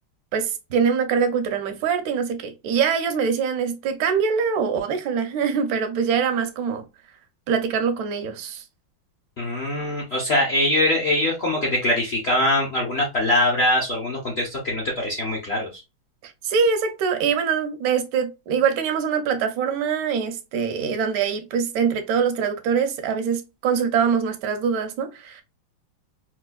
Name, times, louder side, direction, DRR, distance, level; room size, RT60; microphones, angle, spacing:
voice 1, 0.3-6.8 7.5-8.6 16.2-25.4, right 6 dB, 75° right, 0.8 m, -23 dB
voice 2, 9.4-15.8, left 1 dB, 65° left, 0.6 m, -23 dB
4.3 x 2.4 x 2.2 m
omnidirectional pair, 2.3 m